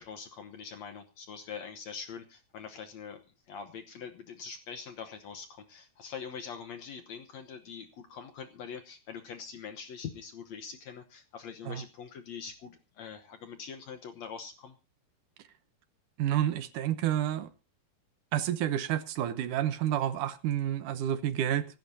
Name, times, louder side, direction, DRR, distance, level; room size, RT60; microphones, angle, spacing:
voice 1, 0.0-3.2 3.5-14.7, left 6 dB, 70° left, 6 dB, 1.6 m, -43 dB
voice 2, 16.2-17.5 18.3-21.7, right 11 dB, 70° right, 11 dB, 2.0 m, -29 dB
25.5 x 12.0 x 2.8 m, 0.30 s
omnidirectional pair, 4.6 m